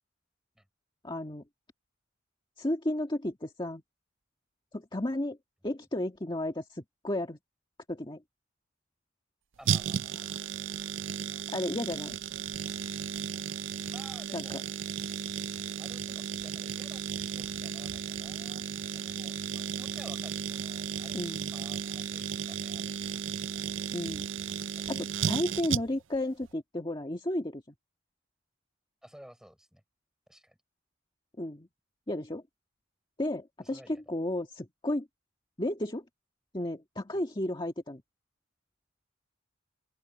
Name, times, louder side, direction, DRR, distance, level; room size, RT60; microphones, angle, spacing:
voice 1, 1.0-1.4 2.6-3.8 4.7-5.4 5.6-7.4 7.9-8.2 11.5-12.2 14.3-14.4 21.1-21.6 23.9-24.3 24.9-27.8 31.4-31.7 32.1-32.4 33.2-33.8 34.1-35.1 35.6-36.0 36.5-38.0, left 1 dB, 25° left, 1.8 m, -33 dB
voice 2, 9.6-10.8 13.8-14.7 15.8-18.7 18.9-23.8 24.8-25.0 29.0-29.8 30.3-30.6 33.6-34.0 37.1-37.2, equal, 5° right, 6.2 m, -54 dB
sound 1, 9.7-26.2 26.4-26.5, right 8 dB, 75° right, 0.5 m, -34 dB
open air
head